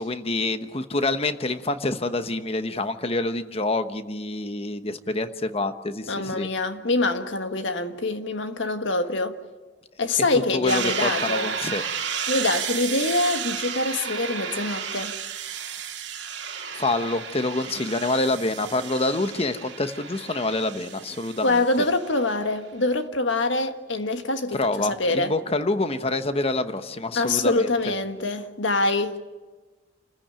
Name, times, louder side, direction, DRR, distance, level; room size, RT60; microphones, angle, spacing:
voice 1, 0.0-6.5 10.3-11.8 16.7-21.6 24.5-27.7, left 2 dB, 30° left, 1.1 m, -27 dB
voice 2, 6.1-9.3 10.0-11.5 12.3-15.2 21.4-25.3 27.1-29.2, left 2 dB, 75° left, 1.6 m, -25 dB
sound 1, 10.7-22.3, right 7 dB, 65° right, 2.4 m, -32 dB
28.5 x 15.0 x 9.0 m
head